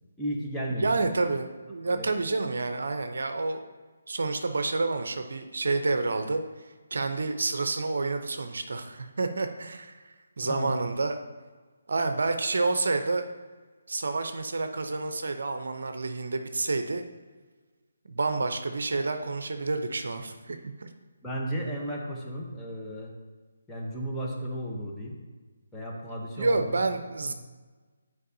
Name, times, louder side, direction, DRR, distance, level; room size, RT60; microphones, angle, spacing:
voice 1, 0.2-1.1 1.9-2.2 10.4-10.7 21.2-23.1 23.7-25.1 25.7-26.8 27.2-27.3, equal, 5° left, -4 dB, 0.9 m, -34 dB
voice 2, 0.8-3.7 4.1-6.4 6.9-10.0 10.4-11.2 11.9-13.2 13.9-17.0 18.1-20.9 26.4-27.3, right 3 dB, 65° right, 7 dB, 0.6 m, -29 dB
9.9 x 4.7 x 2.7 m, 1.4 s
figure-of-eight pair, 150°, 0 cm